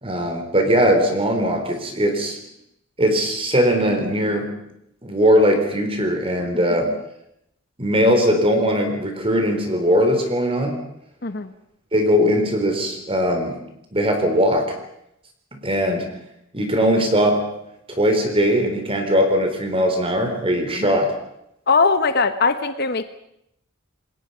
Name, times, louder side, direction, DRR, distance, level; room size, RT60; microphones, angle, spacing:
voice 1, 0.0-2.4 3.0-4.5 5.0-6.9 7.8-10.7 11.9-13.6 13.9-14.8 15.5-16.1 16.5-17.4 17.9-21.1, equal, 25° right, 5 dB, 4.1 m, -20 dB
voice 2, 11.2-11.5 20.7-21.0 21.7-23.0, left 4 dB, 50° left, 10 dB, 1.0 m, -20 dB
27.5 x 21.0 x 5.7 m, 0.79 s
head